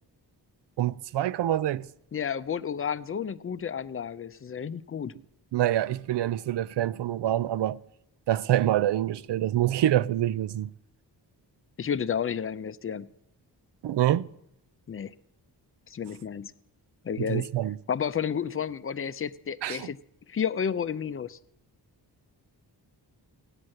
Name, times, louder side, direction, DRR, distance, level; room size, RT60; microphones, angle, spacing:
voice 1, 0.8-1.9 5.5-7.8 8.3-10.7 13.8-14.3 17.2-17.8 19.6-19.9, right 12 dB, 85° right, 0.6 m, -26 dB
voice 2, 2.1-5.1 11.8-13.1 14.9-15.1 15.9-16.5 17.0-17.5 17.9-20.0 20.3-21.4, left 7 dB, 35° left, 0.5 m, -31 dB
16.5 x 9.9 x 7.7 m
wide cardioid pair, 130°, 41 cm